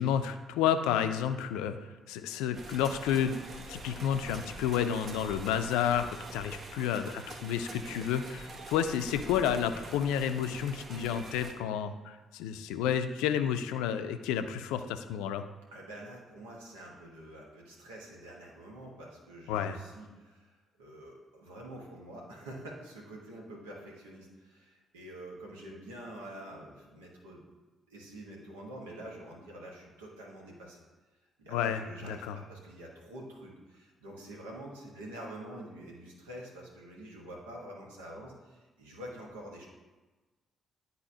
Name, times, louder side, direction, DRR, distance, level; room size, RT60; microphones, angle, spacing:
voice 1, 0.0-1.8 2.1-3.3 3.7-15.4 19.5-19.8 31.5-32.4, left 9 dB, 70° left, 9 dB, 0.4 m, -30 dB
sound 1, 2.5-11.5, right 2 dB, 50° right, 0.9 m, -45 dB
voice 2, 15.7-27.4 27.9-30.8 31.4-39.7, right 1 dB, 80° right, -2 dB, 1.3 m, -47 dB
10.5 x 4.1 x 2.8 m, 1.2 s
figure-of-eight pair, 45°, 0 cm